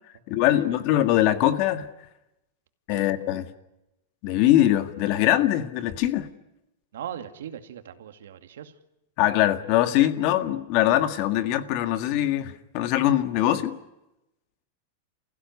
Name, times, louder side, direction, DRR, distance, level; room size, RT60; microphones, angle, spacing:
voice 1, 0.3-1.9 2.9-3.5 4.2-6.3 9.2-13.8, left 13 dB, 45° left, 10 dB, 1.8 m, -22 dB
voice 2, 6.9-8.7, right 9 dB, 85° right, 8 dB, 2.3 m, -39 dB
29.5 x 16.0 x 9.6 m, 0.93 s
supercardioid pair, 150°, 0 cm